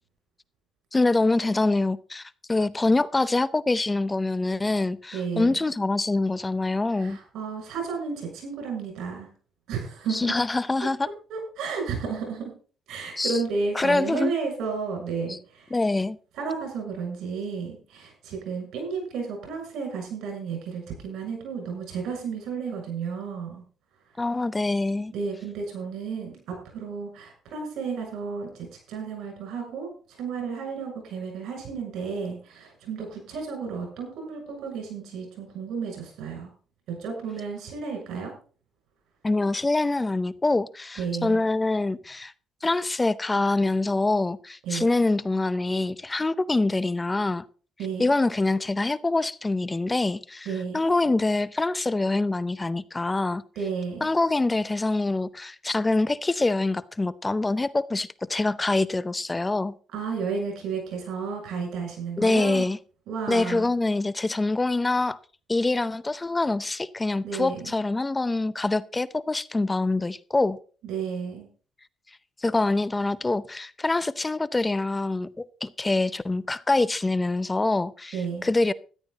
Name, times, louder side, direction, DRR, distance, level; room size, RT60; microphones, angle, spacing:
voice 1, 0.9-7.2 10.1-11.1 13.2-13.4 13.7-14.3 15.3-15.4 15.7-16.2 24.2-25.1 39.2-42.3 42.6-47.4 48.0-50.5 50.7-53.4 54.0-59.7 62.2-62.8 63.3-65.2 65.5-70.6 72.4-75.3 75.6-78.2 78.4-78.7, left 2 dB, 20° left, 0.6 m, -25 dB
voice 2, 5.1-5.7 6.9-9.3 9.7-10.3 11.3-12.5 12.9-15.8 16.4-23.6 25.1-36.5 37.0-38.3 41.0-41.4 44.6-44.9 47.8-48.1 50.5-50.8 53.6-54.1 59.9-62.7 63.1-63.7 67.2-67.7 70.8-71.5 78.1-78.5, right 5 dB, 85° right, 6.8 m, -32 dB
13.5 x 11.0 x 4.1 m
cardioid pair, 90°, 0 cm